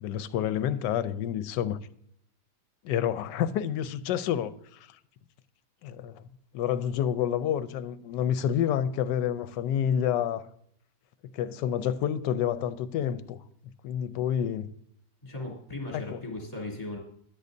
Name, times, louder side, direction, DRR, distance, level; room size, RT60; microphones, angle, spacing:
voice 1, 0.0-1.8 2.8-4.8 5.8-6.2 6.5-10.5 11.3-13.4 13.8-14.7 15.9-16.2, left 9 dB, 85° left, 1.2 m, -28 dB
voice 2, 15.2-17.0, left 2 dB, 20° left, 3.1 m, -37 dB
13.5 x 10.5 x 2.7 m
omnidirectional pair, 1.9 m